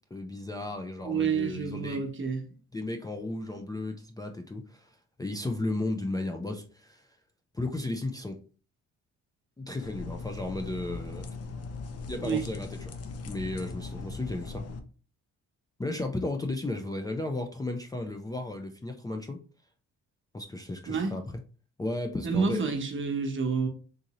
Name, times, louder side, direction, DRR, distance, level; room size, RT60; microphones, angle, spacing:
voice 1, 0.1-2.0 2.7-7.1 7.5-8.4 9.6-11.3 12.1-12.9 13.3-14.7 15.8-19.4 20.3-21.2 21.8-22.6, left 2 dB, 10° left, 0.4 m, -34 dB
voice 2, 1.0-2.4 12.2-12.4 20.9-21.2 22.2-23.7, right 5 dB, 40° right, 1.0 m, -29 dB
sound 1, 9.8-14.8, left 4 dB, 55° left, 0.7 m, -39 dB
3.8 x 2.6 x 2.9 m
cardioid pair, 90°, 30 cm